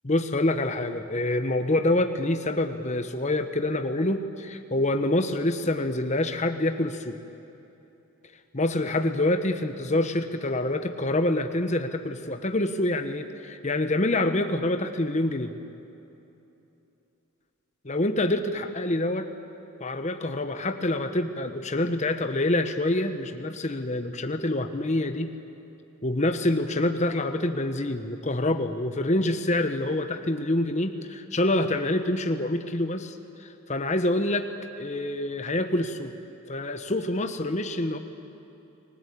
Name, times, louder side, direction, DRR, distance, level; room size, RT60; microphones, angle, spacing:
voice 1, 0.0-7.2 8.5-15.5 17.8-19.3 19.8-25.3 26.0-34.5 34.8-36.1 36.5-38.0, left 1 dB, 35° left, 7 dB, 1.1 m, -26 dB
29.5 x 20.0 x 8.4 m, 2.9 s
head